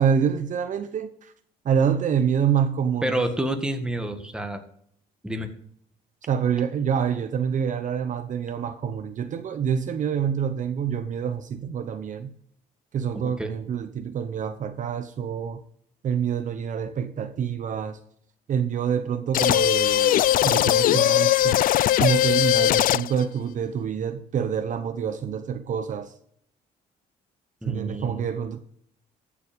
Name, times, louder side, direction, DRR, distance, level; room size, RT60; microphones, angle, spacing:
voice 1, 0.0-1.3 1.6-3.2 6.2-12.3 12.9-15.6 16.0-18.0 18.5-21.6 22.0-26.1 27.7-28.6, right 7 dB, 50° right, 0.9 m, -26 dB
voice 2, 3.0-4.6 5.2-5.5 13.1-13.5 27.6-28.3, right 1 dB, 5° right, 1.9 m, -29 dB
sound 1, 19.3-23.2, left 12 dB, 55° left, 0.5 m, -20 dB
15.0 x 7.4 x 5.2 m
cardioid pair, 110°, 17 cm